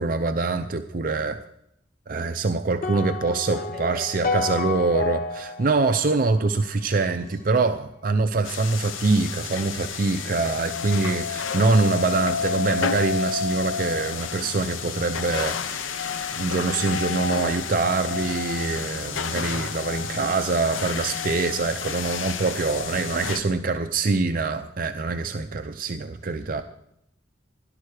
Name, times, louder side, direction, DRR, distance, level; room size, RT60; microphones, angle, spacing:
voice 1, 0.0-1.5 2.1-16.1 16.3-26.6, right 3 dB, 45° right, 8 dB, 0.5 m, -24 dB
sound 1, 2.8-7.1, left 3 dB, 45° left, 0.7 m, -31 dB
voice 2, 3.5-4.7 7.0-7.8 23.3-24.2 26.3-26.6, left 1 dB, ahead, -4 dB, 5.8 m, -45 dB
sound 2, 8.4-23.4, left 6 dB, 85° left, 0.8 m, -30 dB
17.0 x 11.5 x 4.9 m, 0.77 s
head